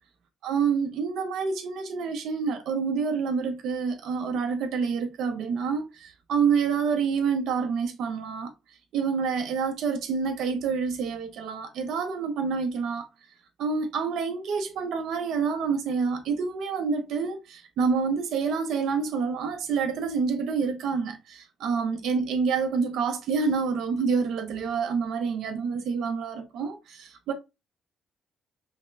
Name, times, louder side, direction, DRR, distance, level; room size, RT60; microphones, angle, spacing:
voice 1, 0.4-13.1 13.6-27.3, right 5 dB, 80° right, 0.6 m, -28 dB
5.3 x 2.1 x 2.3 m
cardioid pair, 90°, 0 cm